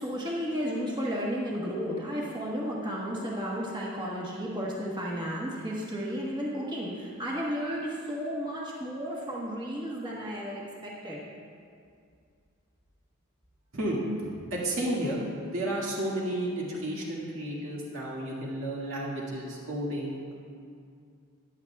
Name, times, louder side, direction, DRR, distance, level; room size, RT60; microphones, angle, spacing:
voice 1, 0.0-11.2, equal, 20° right, -5 dB, 1.2 m, -33 dB
voice 2, 14.5-15.2 15.5-20.3, right 1 dB, 75° right, -4 dB, 2.0 m, -32 dB
14.5 x 9.9 x 2.3 m, 2.3 s
head